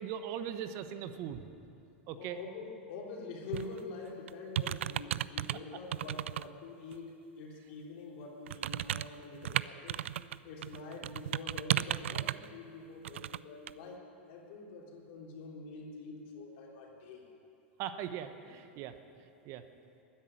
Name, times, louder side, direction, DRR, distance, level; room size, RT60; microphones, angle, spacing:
voice 1, 0.0-1.4 2.1-2.4 11.0-11.1 17.8-18.9 19.4-19.6, right 9 dB, 45° right, 10 dB, 0.9 m, -39 dB
voice 2, 2.1-10.0 10.4-14.0 14.2-17.2, left 3 dB, 60° left, -1 dB, 3.4 m, -46 dB
sound 1, 3.5-3.8 4.3-5.6 5.9-6.4 6.9-7.0 8.5-10.4 10.6-12.5 13.0-13.4 13.7-13.8, right 12 dB, 80° right, 0.3 m, -34 dB
12.5 x 10.0 x 9.9 m, 2.6 s
hypercardioid pair, 110°, 7 cm